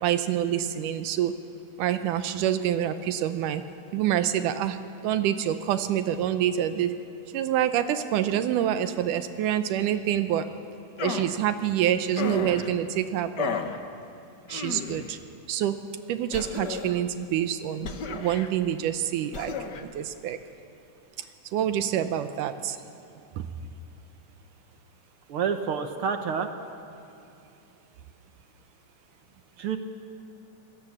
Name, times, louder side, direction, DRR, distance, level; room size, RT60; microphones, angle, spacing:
voice 1, 0.0-1.4 1.8-3.6 3.9-7.0 7.3-10.5 11.0-13.6 14.5-15.2 15.5-15.8 16.1-20.4 21.5-22.8 23.4-23.5, right 10 dB, 85° right, 10 dB, 2.3 m, -27 dB
sound 1, 11.0-11.4 12.2-12.7 13.4-13.8 14.5-15.1 16.3-17.0 17.8-18.5 19.3-19.8, left 6 dB, 75° left, 0.9 m, -33 dB
voice 2, 25.3-26.5 29.6-29.8, right 6 dB, 70° right, 7 dB, 1.3 m, -28 dB
27.5 x 17.5 x 7.3 m, 2.6 s
omnidirectional pair, 3.6 m